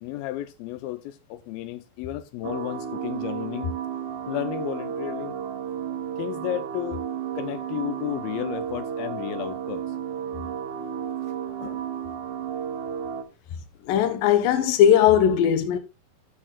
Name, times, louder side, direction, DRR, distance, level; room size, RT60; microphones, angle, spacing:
voice 1, 0.0-3.7 4.3-5.4 6.2-7.0 7.4-9.8 11.6-11.8, left 14 dB, 85° left, 2.1 m, -33 dB
sound 1, 2.4-13.2, right 8 dB, 70° right, 1.9 m, -32 dB
voice 2, 13.9-15.8, left 9 dB, 70° left, 2.4 m, -19 dB
17.0 x 6.3 x 2.4 m
omnidirectional pair, 4.8 m